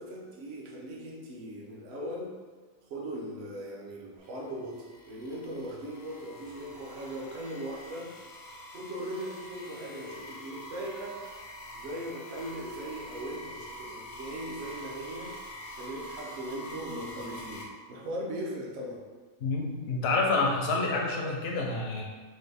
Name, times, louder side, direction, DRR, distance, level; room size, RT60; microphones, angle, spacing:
voice 1, 0.0-2.4 2.9-8.2 8.7-11.2 11.7-15.4 15.8-19.0, right 1 dB, 55° right, -2 dB, 0.8 m, -39 dB
sound 1, 4.2-17.6, equal, 85° left, 1.2 m, -45 dB
voice 2, 19.4-22.0, left 3 dB, 65° left, 0 dB, 0.7 m, -28 dB
4.2 x 2.3 x 3.3 m, 1.5 s
omnidirectional pair, 1.5 m